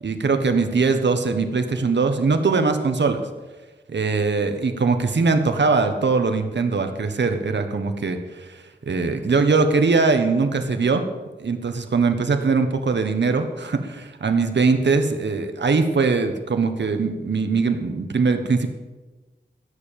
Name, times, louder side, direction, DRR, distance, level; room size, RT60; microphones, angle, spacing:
voice 1, 0.0-3.2 3.9-11.0 11.4-18.7, right 4 dB, 80° right, 7 dB, 1.3 m, -21 dB
16.0 x 6.8 x 9.0 m, 1.2 s
wide cardioid pair, 75°, 18 cm